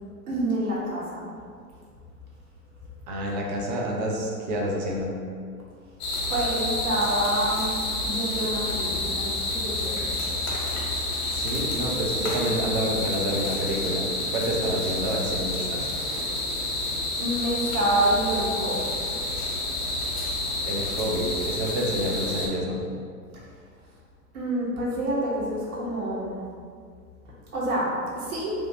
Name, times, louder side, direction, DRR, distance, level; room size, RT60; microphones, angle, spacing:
voice 1, 0.3-1.2 6.3-10.0 17.2-19.2 23.3-23.4 24.3-26.4 27.5-28.5, right 1 dB, 60° right, -5 dB, 1.3 m, -27 dB
voice 2, 3.1-5.1 11.3-15.8 20.6-22.8, equal, 30° right, -1 dB, 0.4 m, -28 dB
sound 1, 6.0-22.5, left 2 dB, 40° left, 1.0 m, -29 dB
3.2 x 2.9 x 2.8 m, 2.2 s
hypercardioid pair, 110°, 48 cm